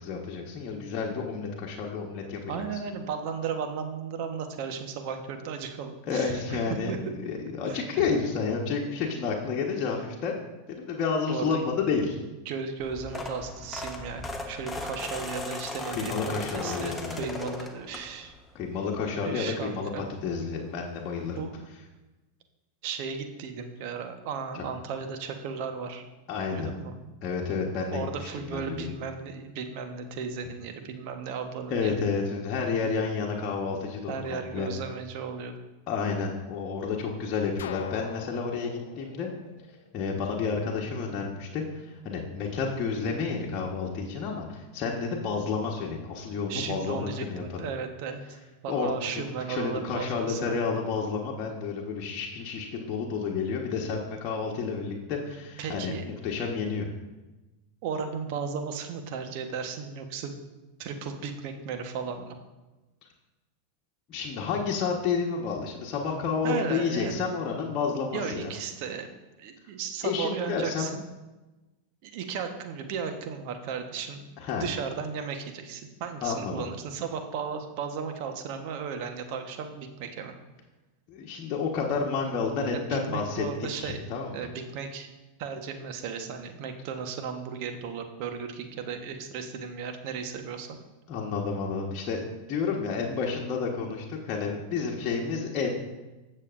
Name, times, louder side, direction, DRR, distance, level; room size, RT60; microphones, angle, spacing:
voice 1, 0.0-2.8 6.1-6.9 7.2-10.4 10.8-12.2 15.9-17.3 18.5-21.4 24.5-24.6 26.3-26.7 27.2-28.1 28.4-29.0 31.7-34.7 35.9-39.3 39.9-47.6 48.7-49.2 49.5-56.9 64.1-68.5 70.0-70.9 74.4-74.7 76.2-76.6 81.1-83.4 83.7-84.5 91.1-95.8, left 5 dB, 40° left, -2 dB, 1.3 m, -30 dB
voice 2, 2.5-7.0 7.7-8.1 11.3-11.6 12.4-16.2 16.5-18.3 19.2-20.1 21.4-21.7 22.8-26.0 26.5-26.9 27.9-32.1 34.1-35.5 46.5-50.5 55.6-56.0 57.8-60.4 60.8-62.3 66.4-67.3 68.1-69.1 69.4-71.0 72.0-74.2 74.6-80.3 82.9-84.1 84.3-85.1 85.4-90.7, right 6 dB, 55° right, 6 dB, 1.1 m, -35 dB
sound 1, 12.8-18.4 18.9-19.2 20.4-20.5 20.7-20.8 21.2-21.3, left 1 dB, 10° left, 1.1 m, -37 dB
sound 2, 37.6-40.4, left 9 dB, 70° left, 0.5 m, -42 dB
15.5 x 6.6 x 2.6 m, 1.1 s
hypercardioid pair, 90°, 0 cm